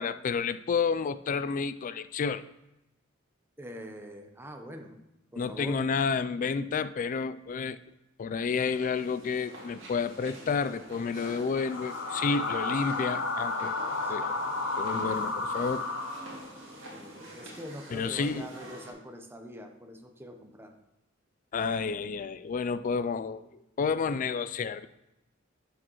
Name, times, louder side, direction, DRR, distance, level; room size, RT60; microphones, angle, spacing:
voice 1, 0.0-2.4 5.4-7.8 8.2-13.8 14.1-14.3 14.8-15.9 17.9-18.5 21.5-23.4 23.8-24.9, left 5 dB, 40° left, 14 dB, 0.3 m, -30 dB
voice 2, 3.6-5.0 5.3-5.8 14.0-14.5 16.9-20.7, equal, 10° right, 4 dB, 0.8 m, -44 dB
sound 1, 8.5-18.9, right 1 dB, 75° right, 2.0 m, -46 dB
sound 2, 11.6-16.6, left 3 dB, 90° left, 1.0 m, -32 dB
10.5 x 6.4 x 3.0 m, 0.91 s
head